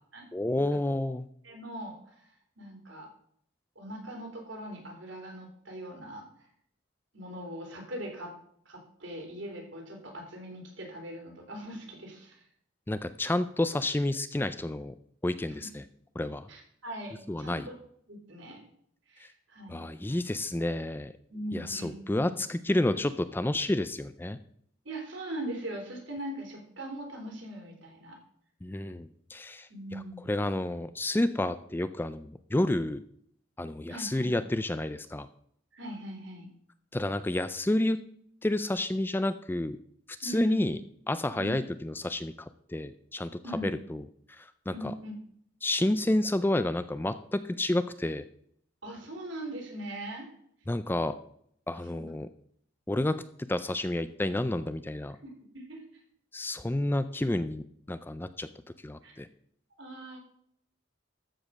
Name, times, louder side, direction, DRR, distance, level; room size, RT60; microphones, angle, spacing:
voice 1, 0.3-1.3 12.9-14.9 15.2-15.8 16.2-16.5 17.3-17.7 19.7-21.1 21.5-24.4 28.6-33.0 33.6-35.3 36.9-38.0 38.4-39.8 40.2-40.8 41.1-43.3 43.6-44.0 44.4-44.9 45.6-48.2 50.7-51.1 51.7-52.3 52.9-53.1 53.5-55.2 56.3-58.5 58.8-59.3, left 1 dB, 10° left, 12 dB, 0.3 m, -30 dB
voice 2, 1.4-3.1 3.7-6.3 7.1-8.3 8.6-12.4 15.5-15.7 16.5-17.7 18.1-18.6 19.1-20.2 21.3-22.3 24.8-28.2 29.7-30.3 33.9-34.3 35.7-36.5 40.2-40.7 41.3-41.6 43.4-43.7 44.7-45.1 48.8-50.3 51.9-52.1 55.2-56.0 59.0-59.2 59.8-60.2, right 1 dB, 70° right, 1 dB, 3.4 m, -41 dB
13.5 x 5.2 x 6.3 m, 0.67 s
head